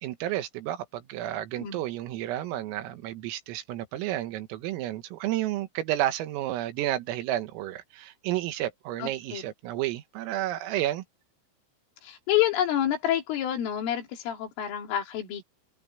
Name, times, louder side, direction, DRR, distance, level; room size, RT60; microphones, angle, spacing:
voice 1, 0.0-11.0, right 13 dB, 90° right, 4.1 m, -31 dB
voice 2, 9.0-9.4 12.0-15.4, left 11 dB, 75° left, 5.4 m, -28 dB
omnidirectional pair, 5.8 m